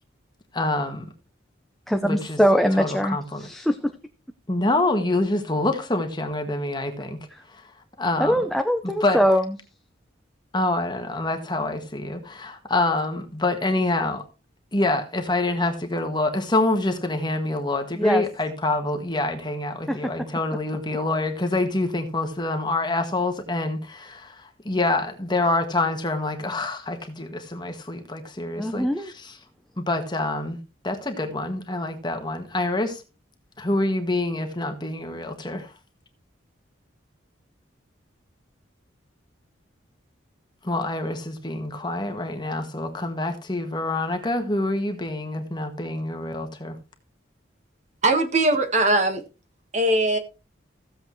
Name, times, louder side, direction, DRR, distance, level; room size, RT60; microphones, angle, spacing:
voice 1, 0.5-1.1 2.0-2.4 2.8-3.4 4.5-7.2 7.5-7.6 8.0-8.3 8.8-9.2 10.5-14.2 14.7-29.4 29.8-33.0 33.6-35.7 40.6-46.7, left 2 dB, 20° left, 1.5 m, -26 dB
voice 2, 1.9-3.8 8.2-9.5 18.0-18.2 19.9-20.0 28.6-29.1, equal, ahead, 0.6 m, -22 dB
voice 3, 48.0-49.2 49.7-50.2, right 2 dB, 35° right, 1.5 m, -20 dB
16.0 x 7.6 x 3.1 m
head